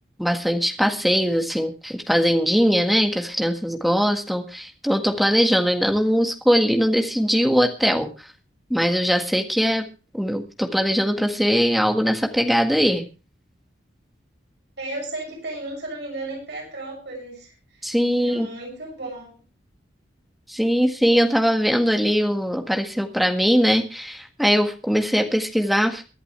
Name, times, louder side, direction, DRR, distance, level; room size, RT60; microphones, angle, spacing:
voice 1, 0.2-8.1 8.7-9.9 10.1-13.0 17.8-18.5 20.5-26.0, equal, ahead, 4 dB, 1.7 m, -21 dB
voice 2, 14.8-17.9 18.2-19.4, right 2 dB, 60° right, 0 dB, 7.1 m, -34 dB
23.5 x 11.0 x 3.3 m, 0.33 s
head